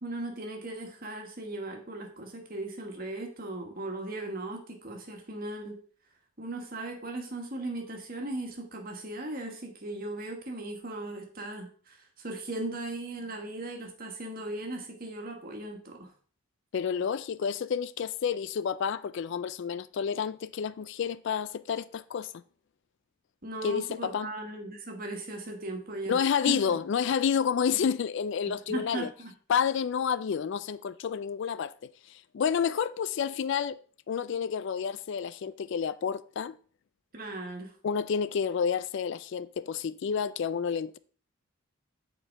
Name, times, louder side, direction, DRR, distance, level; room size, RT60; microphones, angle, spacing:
voice 1, 0.0-5.8 6.4-16.1 23.4-26.8 28.5-29.3 37.1-37.7, right 2 dB, 45° right, 1.6 m, -38 dB
voice 2, 16.7-22.3 23.6-24.3 26.1-29.1 29.5-31.7 32.1-33.8 34.1-36.6 37.8-41.0, left 7 dB, 60° left, 0.3 m, -29 dB
7.8 x 4.5 x 4.7 m
head